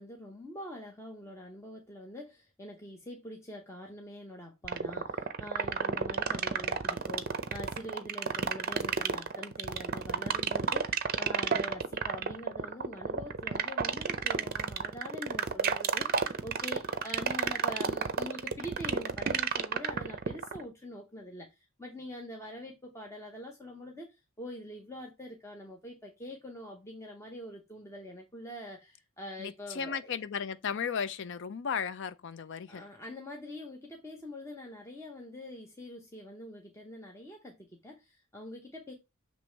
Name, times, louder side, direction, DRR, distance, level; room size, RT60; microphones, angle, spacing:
voice 1, 0.0-30.2 32.7-38.9, left 1 dB, 15° left, 0.8 m, -44 dB
sound 1, 4.6-20.6, right 6 dB, 45° right, 0.5 m, -30 dB
voice 2, 29.4-32.8, left 6 dB, 55° left, 0.5 m, -35 dB
6.8 x 3.1 x 4.5 m
head